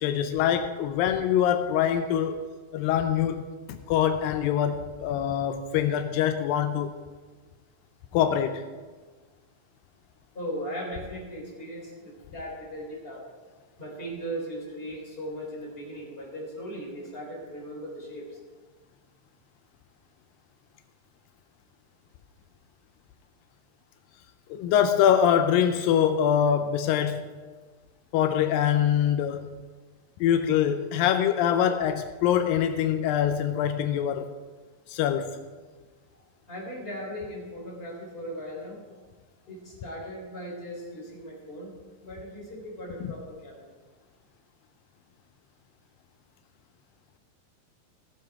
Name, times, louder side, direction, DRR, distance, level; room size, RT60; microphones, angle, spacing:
voice 1, 0.0-2.4 2.7-6.9 8.1-8.6 24.5-27.2 28.1-29.5 30.2-34.3 34.9-35.4 43.0-43.1, left 9 dB, 85° left, 7 dB, 2.3 m, -24 dB
voice 2, 10.3-13.2 13.8-18.4 36.5-38.8 39.5-41.7 42.0-43.7, equal, 15° left, -4 dB, 3.7 m, -38 dB
16.5 x 7.4 x 4.8 m, 1.4 s
omnidirectional pair, 4.1 m